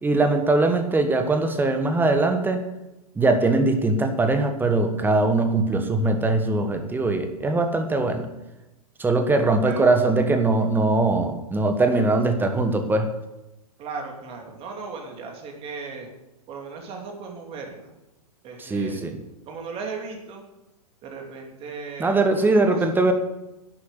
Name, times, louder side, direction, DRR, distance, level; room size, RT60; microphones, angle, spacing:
voice 1, 0.0-2.6 3.2-8.3 9.0-13.1 18.6-19.2 22.0-23.1, right 2 dB, 10° right, 7 dB, 1.3 m, -21 dB
voice 2, 13.8-16.1 16.5-17.9 18.4-19.0 19.5-20.4 21.0-23.0, right 4 dB, 30° right, 2 dB, 2.8 m, -37 dB
11.0 x 8.3 x 8.3 m, 0.95 s
figure-of-eight pair, 110°, 20 cm